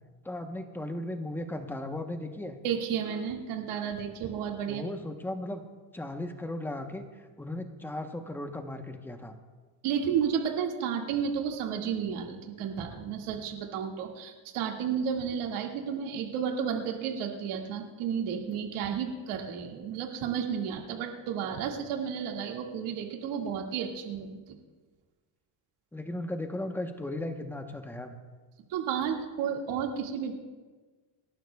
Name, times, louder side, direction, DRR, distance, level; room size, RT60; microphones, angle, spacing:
voice 1, 0.2-2.6 4.7-5.6 5.9-7.0 7.4-9.3 25.9-28.2, left 1 dB, 5° left, 5 dB, 0.9 m, -36 dB
voice 2, 2.6-4.8 9.8-24.4 28.7-30.4, right 7 dB, 85° right, 1 dB, 2.1 m, -32 dB
27.5 x 12.0 x 2.3 m, 1.4 s
cardioid pair, 135°, 48 cm